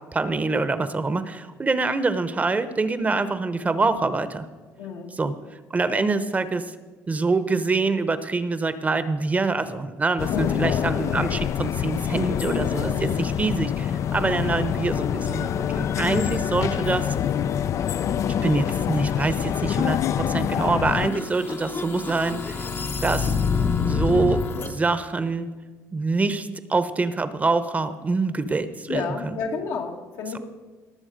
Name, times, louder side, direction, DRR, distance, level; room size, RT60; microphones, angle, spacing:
voice 1, 0.1-4.5 5.2-5.3 5.7-6.6 7.1-17.1 18.4-22.6 23.0-23.3 23.8-25.5 25.9-29.4, right 3 dB, 25° right, 12 dB, 0.8 m, -25 dB
voice 2, 4.8-5.1 5.9-6.1 10.3-10.6 12.8-13.1 16.1-16.4 28.9-30.4, left 5 dB, 80° left, 1 dB, 1.9 m, -31 dB
sound 1, 10.2-21.1, left 9 dB, 55° left, 0.4 m, -25 dB
sound 2, 20.9-24.7, left 5 dB, 35° left, 0.8 m, -26 dB
18.0 x 7.1 x 5.1 m, 1.3 s
cardioid pair, 95°, 6 cm